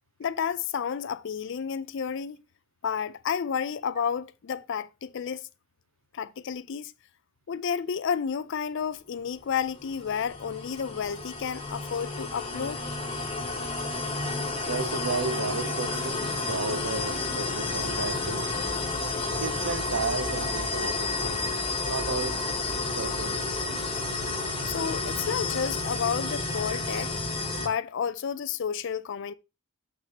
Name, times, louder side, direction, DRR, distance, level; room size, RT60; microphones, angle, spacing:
voice 1, 0.2-2.4 2.8-5.5 6.1-6.9 7.5-12.8 24.6-27.2 27.6-29.3, left 7 dB, 55° left, 0.4 m, -31 dB
sound 1, 9.7-27.7, left 3 dB, 25° left, 1.2 m, -31 dB
voice 2, 14.7-18.5 19.2-21.5 21.8-22.4 22.8-23.4, right 4 dB, 70° right, 0.7 m, -33 dB
7.3 x 6.0 x 2.8 m
head